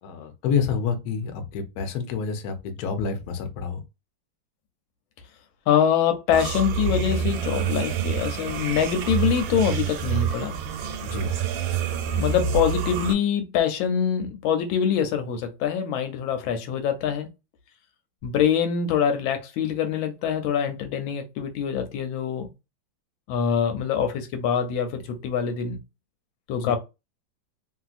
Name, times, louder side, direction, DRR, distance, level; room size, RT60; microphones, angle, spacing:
voice 1, 0.0-3.8 11.0-11.3 26.6-26.8, left 6 dB, 65° left, 1.0 m, -28 dB
voice 2, 5.7-10.6 12.2-17.3 18.2-22.5 23.3-25.8 26.5-26.8, left 8 dB, 90° left, 1.4 m, -24 dB
sound 1, 6.3-13.1, right 7 dB, 85° right, 1.4 m, -27 dB
3.0 x 2.7 x 2.4 m
omnidirectional pair, 2.1 m